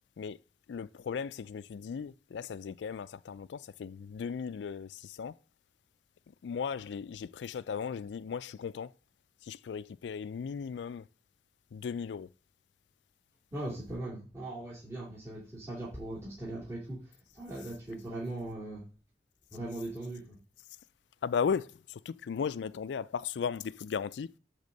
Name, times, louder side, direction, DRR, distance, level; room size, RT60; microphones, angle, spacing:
voice 1, 0.7-5.3 6.4-8.9 9.4-11.1 11.7-12.3 21.2-24.3, left 6 dB, 80° left, 0.4 m, -36 dB
voice 2, 13.5-17.0 17.3-18.8 19.5-20.4, right 1 dB, 15° right, 2.4 m, -39 dB
10.5 x 3.6 x 6.6 m
head